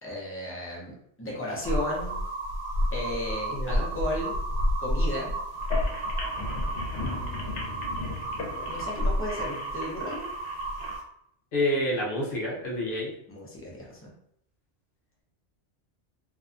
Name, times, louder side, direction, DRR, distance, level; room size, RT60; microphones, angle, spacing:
voice 1, 0.0-2.2 2.9-4.3 4.8-5.3 6.9-8.2 8.6-10.2 13.3-14.1, left 1 dB, 20° left, -4 dB, 0.4 m, -35 dB
sound 1, 1.6-11.0, equal, 90° right, 0.9 m, -30 dB
voice 2, 3.5-3.9 11.5-13.1, left 1 dB, 55° left, -3 dB, 0.8 m, -28 dB
sound 2, 5.5-11.0, left 3 dB, 80° left, 1.0 m, -37 dB
2.6 x 2.1 x 2.5 m, 0.73 s
omnidirectional pair, 1.2 m